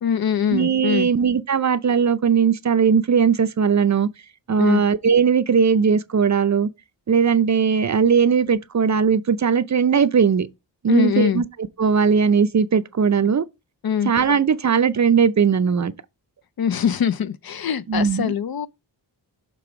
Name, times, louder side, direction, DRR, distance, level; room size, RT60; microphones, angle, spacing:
voice 1, 0.0-1.1 4.6-4.8 10.9-11.4 13.8-14.1 16.6-18.7, left 8 dB, 55° left, 0.5 m, -23 dB
voice 2, 0.5-4.1 4.5-6.7 7.1-10.5 10.8-11.4 11.8-13.4 14.0-15.9 17.9-18.3, right 6 dB, 40° right, 0.5 m, -19 dB
6.8 x 3.5 x 4.8 m
wide cardioid pair, 105°, 45 cm